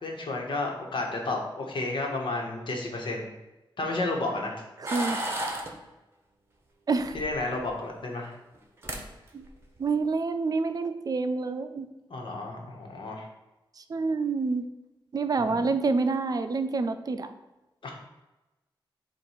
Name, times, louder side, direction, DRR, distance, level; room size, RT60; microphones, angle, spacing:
voice 1, 0.0-3.3 3.8-4.6 7.1-8.3 12.1-13.2 15.4-15.6 17.8-17.9, left 2 dB, 65° left, 0 dB, 1.3 m, -32 dB
voice 2, 4.8-5.2 6.9-7.2 9.3-9.4 9.8-11.9 13.8-14.7 15.1-17.3, right 4 dB, 45° right, 9 dB, 0.5 m, -27 dB
sound 1, 4.9-5.7 7.0-7.7 8.6-8.7 8.8-9.0 9.4-9.8, right 1 dB, 25° right, 1.0 m, -33 dB
7.4 x 2.6 x 5.6 m, 1.0 s
wide cardioid pair, 105°, 9 cm